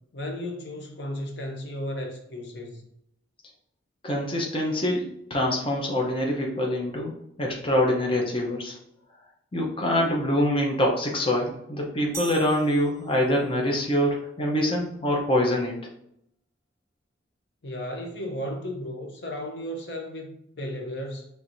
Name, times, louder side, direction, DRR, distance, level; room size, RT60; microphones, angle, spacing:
voice 1, 0.1-2.8 17.6-21.3, left 1 dB, 60° left, 2 dB, 0.7 m, -34 dB
voice 2, 4.0-8.8 9.5-15.7, left 1 dB, 30° left, -1 dB, 0.7 m, -25 dB
sound 1, 12.1-13.5, right 4 dB, 15° right, 0.4 m, -41 dB
4.6 x 3.3 x 2.6 m, 0.74 s
head